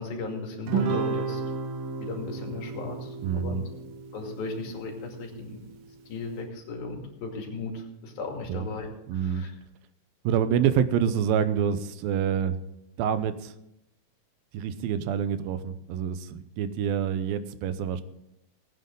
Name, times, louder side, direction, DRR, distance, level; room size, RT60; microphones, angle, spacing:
voice 1, 0.0-1.4 2.0-3.6 4.1-5.6 6.1-9.5, left 3 dB, 80° left, 1 dB, 4.2 m, -36 dB
Guitar, 0.7-5.3, right 5 dB, 70° right, 2.8 m, -32 dB
voice 2, 3.2-3.6 8.5-8.7 9.1-9.4 10.2-12.6 13.0-13.5 14.5-18.0, right 8 dB, 90° right, 12 dB, 2.5 m, -27 dB
19.5 x 9.4 x 3.8 m, 0.84 s
omnidirectional pair, 4.1 m